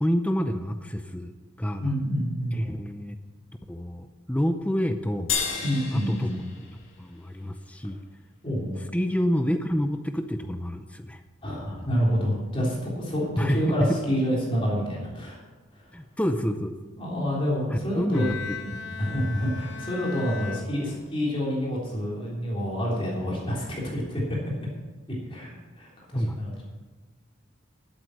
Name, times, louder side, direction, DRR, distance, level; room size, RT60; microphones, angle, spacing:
voice 1, 0.0-1.9 2.5-3.2 3.7-5.3 5.9-6.3 7.0-8.0 8.9-11.2 13.4-14.0 15.9-16.8 17.7-18.3 18.9-19.1 26.1-26.4, equal, 5° left, 7 dB, 0.5 m, -28 dB
voice 2, 1.8-2.6 5.6-6.4 8.4-8.8 11.4-15.4 15.7-15.9 17.0-18.3 19.0-24.4 25.3-25.5 25.8-26.5, equal, 25° left, -4 dB, 3.4 m, -28 dB
sound 1, 5.3-7.9, left 6 dB, 70° left, 2.4 m, -33 dB
Bowed string instrument, 18.1-21.5, left 5 dB, 55° left, 1.2 m, -39 dB
12.0 x 8.1 x 6.5 m, 1.3 s
head